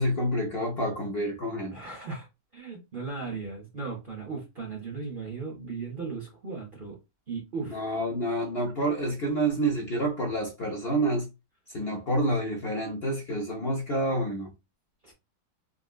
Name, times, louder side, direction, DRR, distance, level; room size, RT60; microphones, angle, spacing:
voice 1, 0.0-1.8 7.7-11.3 11.7-14.5, right 1 dB, 65° left, 0.6 m, -28 dB
voice 2, 1.7-2.3 2.5-7.0 7.3-7.8 15.0-15.1, right 4 dB, 45° right, 0.7 m, -37 dB
3.7 x 2.1 x 2.4 m
omnidirectional pair, 1.8 m